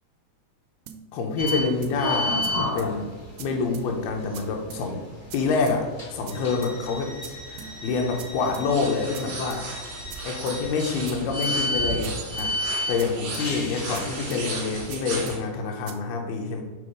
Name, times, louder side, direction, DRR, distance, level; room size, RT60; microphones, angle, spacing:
sound 1, 0.9-1.0 1.5-1.6 1.8-2.0 2.4-2.5 2.8-2.9 3.4-3.5 3.7-3.9 4.3-4.4 4.7-4.8 5.3-5.4 5.7-5.8 6.3-6.4 6.6-6.8 7.2-7.3 7.6-7.7 8.2-8.3 8.5-8.7 9.1-9.2 9.5-9.6 10.1-10.2 10.5-10.6 11.1-11.2 11.4-11.6 12.0-12.1 12.4-12.5 13.0-13.1 13.3-13.5 13.9-14.0 14.3-14.4 14.9-15.0 15.3-15.4 15.9-16.0, right 9 dB, 85° right, 2.0 m, -41 dB
voice 1, 1.1-3.1 3.4-5.0 5.3-7.2 7.5-9.7 10.2-16.6, left 4 dB, 80° left, 2 dB, 2.6 m, -27 dB
sound 2, 1.4-14.7, left 1 dB, 45° left, 0.6 m, -33 dB
sound 3, 8.7-15.4, right 3 dB, 70° right, 1.1 m, -36 dB
7.0 x 3.8 x 5.0 m, 1.2 s
omnidirectional pair, 4.6 m